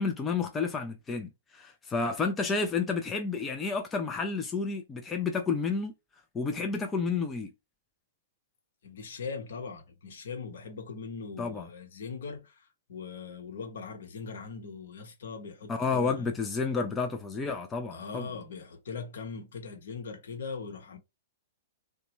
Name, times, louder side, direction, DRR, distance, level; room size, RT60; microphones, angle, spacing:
voice 1, 0.0-5.9 6.3-7.5 11.4-11.7 15.7-18.3, left 4 dB, 15° left, 0.5 m, -30 dB
voice 2, 8.8-16.3 17.9-21.0, left 5 dB, 60° left, 1.0 m, -40 dB
2.9 x 2.2 x 3.0 m
figure-of-eight pair, 105°, 0 cm